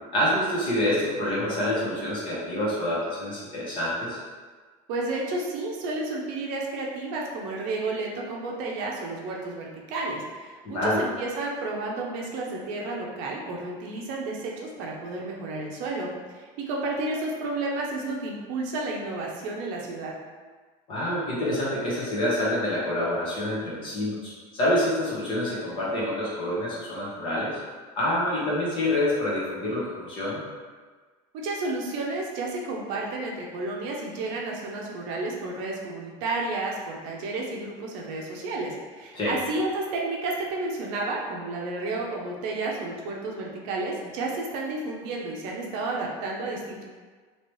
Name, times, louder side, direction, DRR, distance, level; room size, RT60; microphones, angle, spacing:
voice 1, 0.1-4.2 10.6-11.0 20.9-27.6 28.0-30.4 39.1-39.3, left 1 dB, 35° left, -6 dB, 1.0 m, -27 dB
voice 2, 4.9-20.1 31.3-46.8, right 2 dB, 60° right, -2 dB, 0.6 m, -31 dB
3.1 x 2.9 x 3.1 m, 1.4 s
cardioid pair, 175°, 15 cm